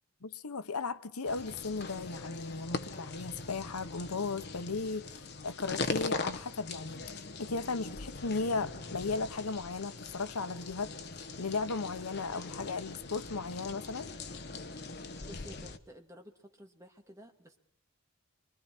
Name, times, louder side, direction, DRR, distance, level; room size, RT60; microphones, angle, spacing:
voice 1, 0.2-7.0 7.4-10.9 11.4-14.1, left 4 dB, 85° left, 1.0 m, -36 dB
sound 1, 1.2-15.8, left 3 dB, 45° left, 1.1 m, -41 dB
voice 2, 15.3-17.6, equal, 15° right, 2.0 m, -52 dB
26.0 x 24.5 x 4.4 m
head